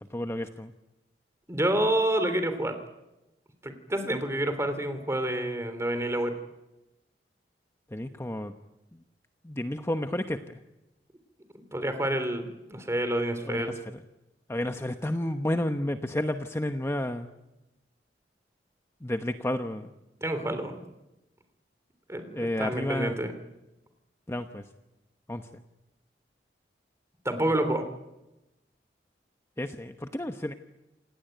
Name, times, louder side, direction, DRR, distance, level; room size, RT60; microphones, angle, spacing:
voice 1, 0.1-0.7 7.9-8.5 9.4-10.4 13.4-13.7 14.5-17.3 19.0-19.9 22.3-23.2 24.3-24.6 25.3-25.6 29.6-30.5, left 1 dB, 15° left, 6 dB, 1.0 m, -31 dB
voice 2, 1.5-2.8 3.6-6.3 11.7-13.8 20.2-20.8 22.1-23.3 27.2-27.8, right 1 dB, 15° right, 8 dB, 3.2 m, -28 dB
28.0 x 17.5 x 9.1 m, 0.96 s
head